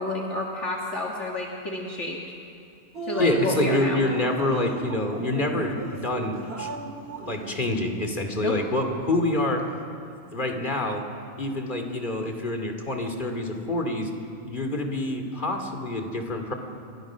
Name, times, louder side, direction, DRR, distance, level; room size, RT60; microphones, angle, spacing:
voice 1, 0.0-2.2 3.0-4.0 8.4-8.6, left 2 dB, 55° left, -1 dB, 2.3 m, -30 dB
Drip, 2.9-8.2, right 4 dB, 45° right, 2.2 m, -36 dB
voice 2, 3.2-6.7 7.2-9.6 10.3-11.0 11.4-14.1 14.4-16.5, left 1 dB, 35° left, 4 dB, 2.7 m, -27 dB
29.5 x 23.0 x 6.3 m, 2.6 s
omnidirectional pair, 1.5 m